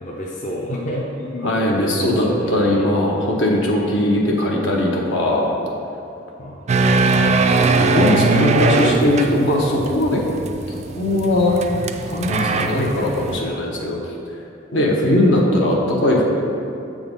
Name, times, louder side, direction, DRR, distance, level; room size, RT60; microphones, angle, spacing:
voice 1, 0.0-1.5 2.0-2.9 6.4-7.3 8.2-8.4, left 1 dB, 40° left, -3 dB, 0.6 m, -30 dB
voice 2, 1.4-5.5 7.8-10.2 10.9-11.6 12.1-14.0 14.7-16.2, left 1 dB, 70° left, -1 dB, 1.0 m, -19 dB
sound 1, 6.7-13.4, right 3 dB, 35° right, 0.3 m, -20 dB
7.2 x 3.8 x 5.3 m, 2.8 s
head